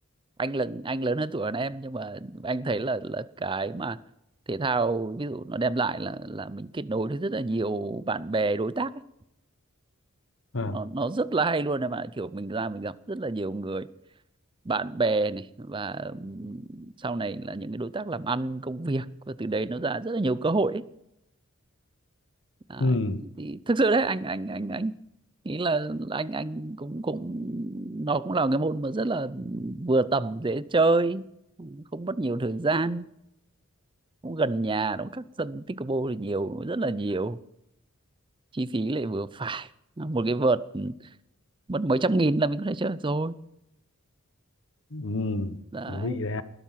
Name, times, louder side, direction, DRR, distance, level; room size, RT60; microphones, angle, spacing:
voice 1, 0.4-4.0 4.5-8.9 10.7-13.9 14.7-20.8 22.7-25.0 25.4-31.2 31.6-33.1 34.2-37.4 38.5-39.7 40.0-40.9 41.7-43.4 45.7-46.2, right 3 dB, 25° right, 0.5 m, -28 dB
voice 2, 22.8-23.2 44.9-45.6 45.9-46.4, left 2 dB, 60° left, 1.1 m, -28 dB
20.0 x 12.0 x 5.8 m
head